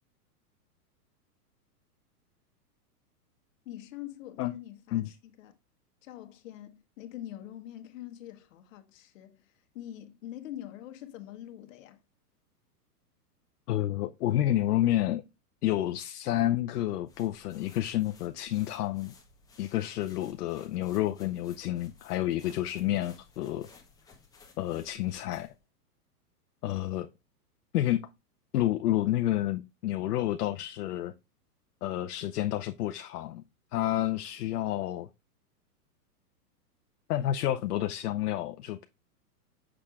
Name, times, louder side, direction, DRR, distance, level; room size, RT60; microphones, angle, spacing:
voice 1, 3.6-5.6 6.0-12.0, left 12 dB, 55° left, 1.2 m, -44 dB
voice 2, 13.7-15.2 15.6-19.1 19.6-23.7 24.6-25.5 26.6-27.1 27.7-28.0 28.5-31.1 31.8-33.4 33.7-35.1 37.1-38.8, left 13 dB, 70° left, 0.7 m, -29 dB
sound 1, 17.1-25.6, left 4 dB, 10° left, 0.9 m, -58 dB
6.6 x 6.1 x 2.4 m
hypercardioid pair, 140°, 47 cm